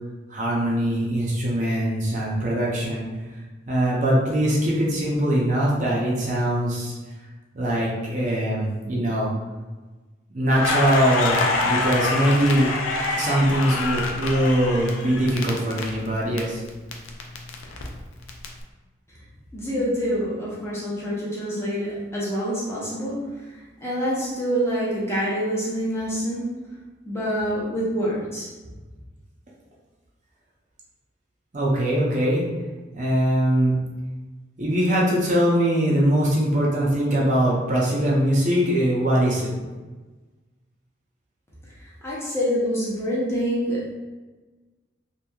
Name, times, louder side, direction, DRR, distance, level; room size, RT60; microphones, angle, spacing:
voice 1, 0.3-3.0 3.7-6.9 7.5-9.3 10.3-12.7 13.1-16.6 31.5-32.5 32.9-33.7 34.6-39.5, right 1 dB, 40° right, -4 dB, 0.5 m, -22 dB
Crackle, 10.5-16.4 16.7-18.5, left 3 dB, 85° left, 0.4 m, -26 dB
voice 2, 19.5-23.2 23.8-26.5 27.1-28.5 42.0-43.9, equal, 15° left, -7 dB, 0.6 m, -26 dB
2.9 x 2.6 x 2.3 m, 1.2 s
head